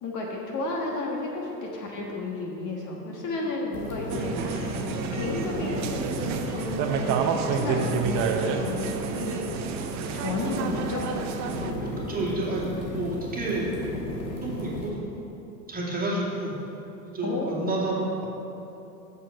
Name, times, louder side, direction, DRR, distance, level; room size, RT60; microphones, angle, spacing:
voice 1, 0.0-9.4 10.1-11.1 17.2-17.7, left 2 dB, 40° left, -1 dB, 1.5 m, -33 dB
sound 1, 3.7-14.9, left 1 dB, 90° left, 2.1 m, -35 dB
sound 2, 4.1-11.7, right 6 dB, 35° right, 0.8 m, -29 dB
voice 2, 12.1-13.7 14.1-15.3 15.7-16.5 17.0-18.2, right 2 dB, 15° right, -4 dB, 2.2 m, -30 dB
8.8 x 6.7 x 5.5 m, 2.9 s
hypercardioid pair, 100°, 49 cm